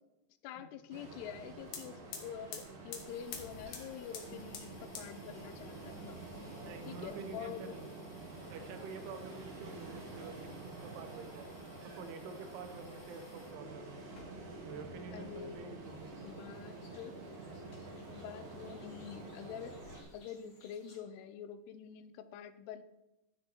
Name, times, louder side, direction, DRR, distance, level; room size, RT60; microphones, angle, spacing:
voice 1, 0.4-6.2 6.9-7.7 15.1-15.8 16.2-17.2 18.1-22.8, left 8 dB, 80° left, 12 dB, 2.6 m, -46 dB
Ocean, 0.9-20.0, right 2 dB, 65° right, 3.5 m, -48 dB
sound 1, 1.3-1.4 1.6-13.6 14.0-14.8 15.1-16.1, left 6 dB, 60° left, 2.4 m, -53 dB
voice 2, 6.6-7.9 8.5-11.5 11.8-14.0 14.6-16.4, right 5 dB, 80° right, 8 dB, 2.8 m, -48 dB
sound 2, 15.8-21.0, left 3 dB, 40° left, 3.0 m, -65 dB
11.5 x 6.4 x 4.4 m, 0.92 s
omnidirectional pair, 4.8 m